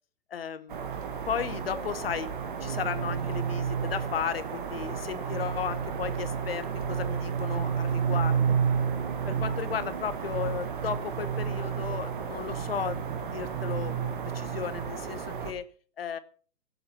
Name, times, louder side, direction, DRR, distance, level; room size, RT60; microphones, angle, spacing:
voice 1, 0.3-0.8 1.3-2.3 2.6-8.6 9.2-13.0 13.3-15.7 16.0-16.2, left 8 dB, 40° left, 14 dB, 0.9 m, -34 dB
sound 1, 0.7-15.5, right 7 dB, 30° right, 1.2 m, -31 dB
16.0 x 8.1 x 5.9 m, 0.42 s
hypercardioid pair, 170°, 48 cm